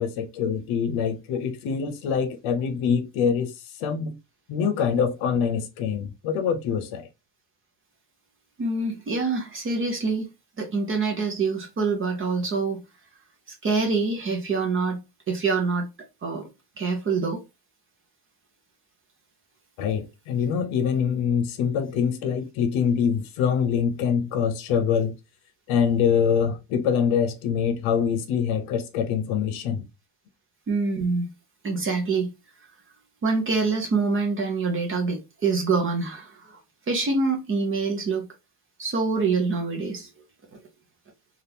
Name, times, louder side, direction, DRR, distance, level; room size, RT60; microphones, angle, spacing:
voice 1, 0.0-3.5 3.8-4.2 4.5-7.1 19.8-25.1 25.7-29.8, left 7 dB, 75° left, 0.8 m, -24 dB
voice 2, 8.6-10.3 10.6-12.8 13.6-15.0 15.3-15.9 16.2-16.4 16.8-17.4 30.7-31.2 31.6-32.3 33.2-36.6 36.9-38.2 38.8-40.1, right 4 dB, 25° right, 0.5 m, -25 dB
3.5 x 2.4 x 2.7 m
cardioid pair, 180°, 49 cm